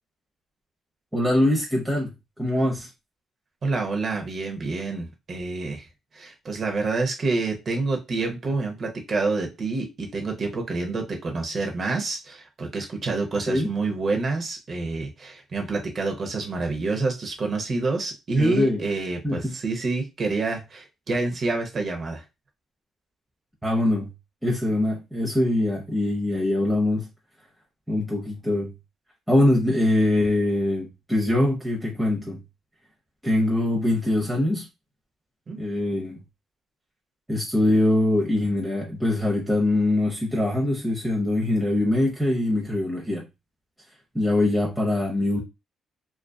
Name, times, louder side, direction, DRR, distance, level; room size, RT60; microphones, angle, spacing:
voice 1, 1.1-2.1 2.4-2.9 13.5-13.7 18.4-18.8 19.2-19.5 23.6-24.1 24.4-27.1 27.9-28.7 29.3-32.4 33.2-34.7 35.6-36.2 37.3-43.3 44.1-45.4, left 1 dB, 5° right, -3 dB, 0.7 m, -23 dB
voice 2, 3.6-5.8 6.1-22.2 35.5-35.6, right 3 dB, 45° right, 2 dB, 0.8 m, -27 dB
2.6 x 2.3 x 2.2 m, 0.25 s
cardioid pair, 90°, 0 cm